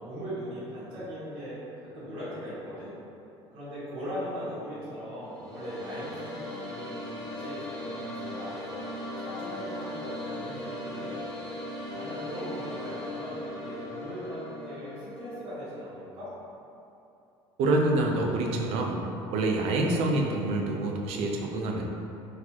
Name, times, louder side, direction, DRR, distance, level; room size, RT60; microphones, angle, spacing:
voice 1, 0.0-1.6 1.9-2.9 3.5-8.8 9.1-11.2 11.9-16.3, equal, 55° right, -15 dB, 1.4 m, -39 dB
sound 1, 5.2-15.4, left 1 dB, 10° right, 1.2 m, -38 dB
voice 2, 17.6-19.0 19.3-21.8, right 2 dB, 70° right, 1 dB, 0.5 m, -26 dB
4.1 x 2.4 x 2.8 m, 2.8 s
cardioid pair, 135°, 11 cm